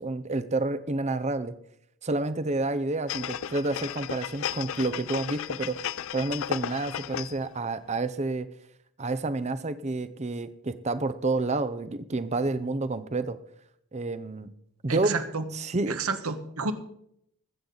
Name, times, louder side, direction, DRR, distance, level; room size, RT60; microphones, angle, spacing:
voice 1, 0.0-1.5 2.0-5.8 6.1-8.5 9.0-13.4 13.9-14.5 14.8-15.2 15.5-16.0, right 2 dB, 30° right, 12 dB, 0.6 m, -29 dB
sound 1, 3.1-7.5 7.9-8.0, left 9 dB, 65° left, 0.4 m, -34 dB
voice 2, 14.9-15.5 15.9-16.7, right 4 dB, 75° right, 9 dB, 1.2 m, -30 dB
20.0 x 8.7 x 4.0 m, 0.72 s
head